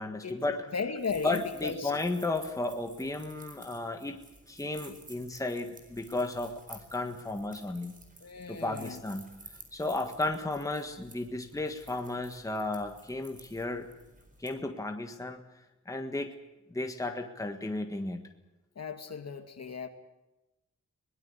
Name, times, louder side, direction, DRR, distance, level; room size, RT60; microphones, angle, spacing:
voice 1, 0.0-0.7 1.2-4.2 4.5-7.9 8.5-9.3 9.7-13.9 14.4-15.4 15.8-16.3 16.7-18.2, left 2 dB, 10° left, 5 dB, 1.6 m, -34 dB
voice 2, 0.7-1.9 8.2-9.0 18.8-19.9, left 5 dB, 55° left, 7 dB, 2.3 m, -36 dB
sound 1, 1.0-14.5, right 2 dB, 25° right, 4.4 m, -53 dB
22.5 x 20.0 x 8.4 m, 0.99 s
wide cardioid pair, 160°, 31 cm